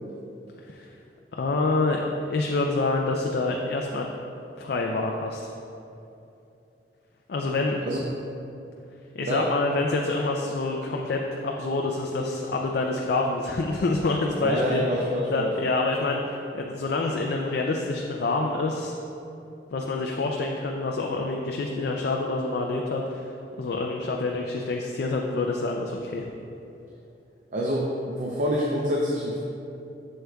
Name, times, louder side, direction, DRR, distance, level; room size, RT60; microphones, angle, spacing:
voice 1, 1.3-2.0 2.3-4.1 4.6-5.4 7.3-7.8 9.1-15.0 15.3-18.9 19.7-23.3 23.6-26.2, left 3 dB, 60° left, 1 dB, 0.4 m, -27 dB
voice 2, 14.4-15.5 27.5-29.4, equal, 45° right, -2 dB, 0.5 m, -26 dB
7.9 x 6.4 x 2.3 m, 2.8 s
head